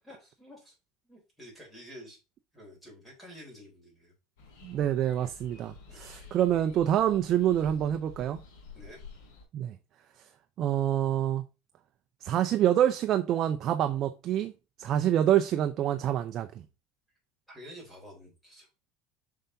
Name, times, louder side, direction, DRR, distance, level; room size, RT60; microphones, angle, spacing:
voice 1, 0.0-0.7 1.0-2.2 2.5-4.1 5.9-6.1 8.7-9.0 17.5-18.7, equal, 5° left, 3.9 m, -49 dB
sound 1, 4.4-9.4, left 4 dB, 90° left, 4.1 m, -50 dB
voice 2, 4.6-8.4 9.5-9.8 10.6-11.4 12.2-14.5 14.8-16.6, right 11 dB, 40° right, 0.6 m, -26 dB
7.2 x 5.7 x 2.7 m
cardioid pair, 155°, 0 cm